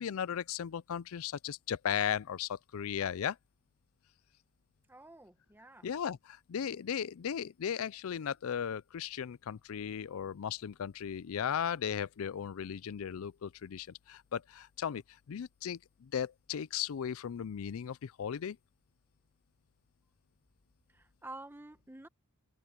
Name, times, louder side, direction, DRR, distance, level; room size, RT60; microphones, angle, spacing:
voice 1, 0.0-3.4 5.8-15.0 15.3-18.6, left 8 dB, 70° left, 0.4 m, -36 dB
voice 2, 4.9-5.9 20.9-22.1, right 2 dB, 10° right, 1.1 m, -50 dB
head